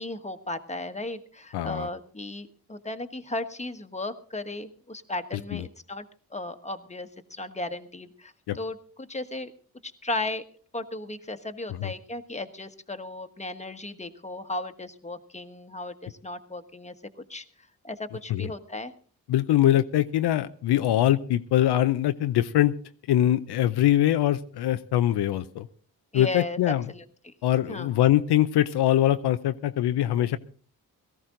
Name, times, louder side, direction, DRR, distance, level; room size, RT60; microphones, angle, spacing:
voice 1, 0.0-6.0 6.3-9.5 9.8-10.4 10.7-16.9 17.3-17.4 17.8-18.9 26.1-27.3 27.7-27.9, left 2 dB, 15° left, 8 dB, 1.4 m, -35 dB
voice 2, 1.5-1.9 5.5-5.6 8.5-8.6 11.7-11.9 18.3-18.5 19.3-22.7 23.1-25.7 26.1-26.9 27.4-30.4, left 12 dB, 75° left, 10 dB, 0.7 m, -23 dB
18.0 x 13.5 x 3.8 m, 0.43 s
supercardioid pair, 45°, 39 cm